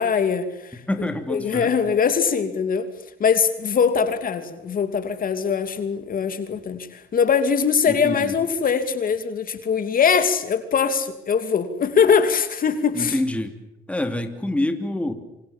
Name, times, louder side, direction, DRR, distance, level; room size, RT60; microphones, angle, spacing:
voice 1, 0.0-0.8 1.3-2.9 3.2-13.1, left 6 dB, 45° left, 9 dB, 2.8 m, -22 dB
voice 2, 0.9-1.7 7.9-8.4 12.9-13.6 13.9-15.1, left 1 dB, 5° left, 6 dB, 3.0 m, -26 dB
28.0 x 26.0 x 7.4 m, 0.87 s
cardioid pair, 120°, 19 cm